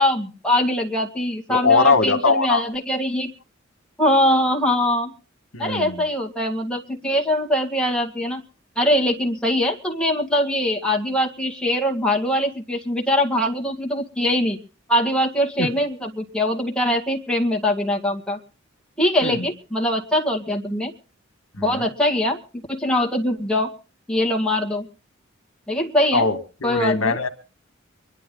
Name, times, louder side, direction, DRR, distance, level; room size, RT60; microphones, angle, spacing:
voice 1, 0.0-3.3 4.0-5.1 5.6-8.4 8.8-14.6 14.9-18.4 19.0-20.9 21.6-22.4 22.7-23.7 24.1-24.9 25.7-26.3 26.6-27.2, left 1 dB, 5° left, 1.9 m, -22 dB
voice 2, 1.5-2.6 5.5-6.0 15.6-15.7 19.2-19.5 21.6-21.9 26.1-27.3, left 4 dB, 85° left, 1.7 m, -21 dB
24.0 x 11.0 x 3.9 m
head